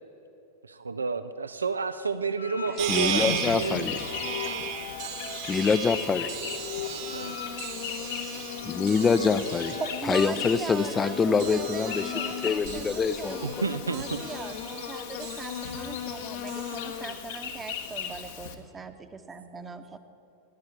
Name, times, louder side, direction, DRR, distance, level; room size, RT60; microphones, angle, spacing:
voice 1, 0.6-4.6 7.1-7.4 13.4-14.3, right 4 dB, 75° right, 11 dB, 0.4 m, -31 dB
sound 1, 2.4-12.7, left 7 dB, 80° left, 1.8 m, -41 dB
Insect, 2.8-18.5, left 8 dB, 55° left, 1.4 m, -37 dB
sound 2, 2.8-16.8, right 11 dB, 50° right, 1.4 m, -37 dB
voice 2, 2.9-4.0 5.5-6.4 8.6-9.8 10.1-12.1 12.4-13.5, left 5 dB, 20° left, 14 dB, 0.6 m, -25 dB
voice 3, 9.8-20.0, right 4 dB, 15° right, 8 dB, 1.0 m, -40 dB
14.5 x 10.5 x 9.2 m, 2.9 s
figure-of-eight pair, 90°, 0 cm